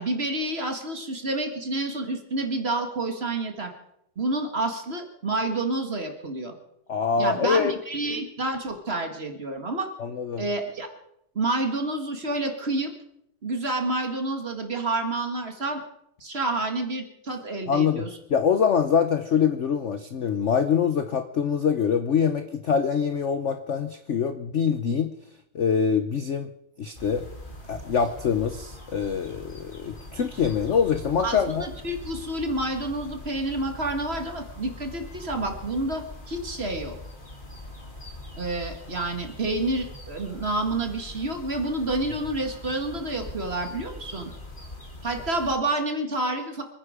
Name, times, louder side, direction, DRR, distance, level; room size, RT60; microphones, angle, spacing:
voice 1, 0.0-3.7 4.2-6.5 7.2-9.9 10.4-10.9 11.4-12.9 13.4-15.8 16.2-18.1 31.2-37.0 38.4-44.3 45.0-46.6, right 2 dB, 30° right, 5 dB, 1.8 m, -29 dB
voice 2, 6.9-7.7 10.0-10.4 17.7-25.1 25.5-26.5 26.8-27.2 27.7-31.7, left 7 dB, 55° left, 9 dB, 0.8 m, -24 dB
sound 1, 26.9-45.6, left 1 dB, 25° left, 2.5 m, -42 dB
26.5 x 9.7 x 5.0 m, 0.78 s
omnidirectional pair, 2.3 m